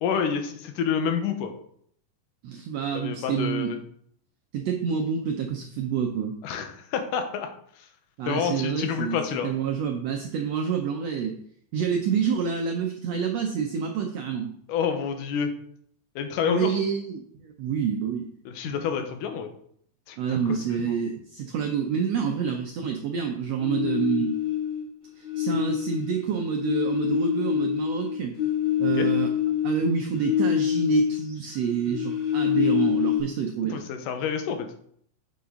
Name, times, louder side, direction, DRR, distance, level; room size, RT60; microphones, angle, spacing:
voice 1, 0.0-1.5 2.9-3.8 6.4-7.5 8.3-9.5 14.7-15.5 16.2-16.8 18.5-19.5 20.1-20.2 20.5-20.8 28.9-29.1 33.7-34.7, left 7 dB, 80° left, 6 dB, 2.4 m, -28 dB
voice 2, 2.4-3.7 4.5-6.4 8.2-11.4 11.7-14.5 16.4-18.3 18.6-18.8 20.2-24.4 25.2-28.4 28.8-29.3 29.6-33.8, right 7 dB, 80° right, 3 dB, 1.5 m, -28 dB
sound 1, 23.6-24.9 25.2-31.3 31.6-33.2, left 10 dB, 30° left, 2.9 m, -26 dB
7.1 x 6.8 x 3.8 m, 0.65 s
omnidirectional pair, 3.8 m